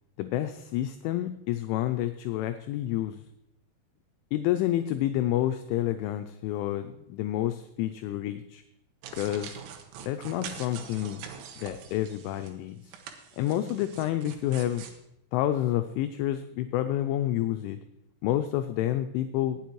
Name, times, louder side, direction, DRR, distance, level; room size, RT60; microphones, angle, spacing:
voice 1, 0.2-3.2 4.3-8.6 9.1-9.6 10.0-11.3 11.6-12.8 13.4-14.8 15.3-17.8 18.2-19.6, left 13 dB, 85° left, 8 dB, 2.8 m, -29 dB
sound 1, 9.0-12.5 12.9-15.0, right 8 dB, 85° right, 3.6 m, -44 dB
18.5 x 8.0 x 3.0 m, 0.81 s
omnidirectional pair, 5.9 m